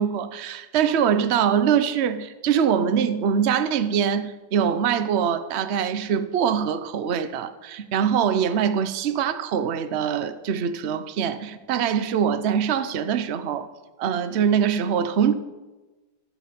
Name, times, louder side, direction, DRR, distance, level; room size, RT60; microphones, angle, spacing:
voice 1, 0.0-13.7 14.0-15.3, right 8 dB, 50° right, 0.9 m, -23 dB
14.5 x 5.8 x 9.3 m
omnidirectional pair, 1.8 m